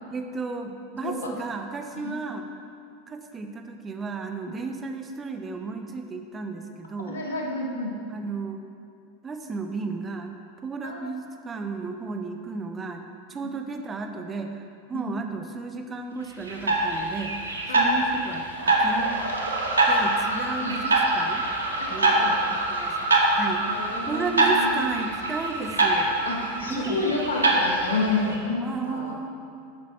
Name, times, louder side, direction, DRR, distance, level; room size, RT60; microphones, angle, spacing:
voice 1, 0.1-2.4 3.1-7.2 8.1-8.6 9.2-10.4 10.6-13.0 13.3-17.3 17.7-19.3 19.9-21.5 21.9-22.3 22.7-23.6 24.0-26.1 26.7-27.1 28.6-29.3, right 4 dB, 20° right, 5 dB, 0.7 m, -34 dB
voice 2, 7.0-7.9 10.8-11.1 13.4-13.5 14.9-15.1 17.7-18.1 20.6-20.7 21.8-22.7 23.0-23.2 23.7-24.7 26.2-29.1, left 2 dB, 75° left, 0 dB, 1.3 m, -30 dB
sound 1, 16.5-28.4, right 2 dB, 85° right, 1.0 m, -24 dB
8.9 x 6.1 x 4.2 m, 2.4 s
figure-of-eight pair, 90°, 0 cm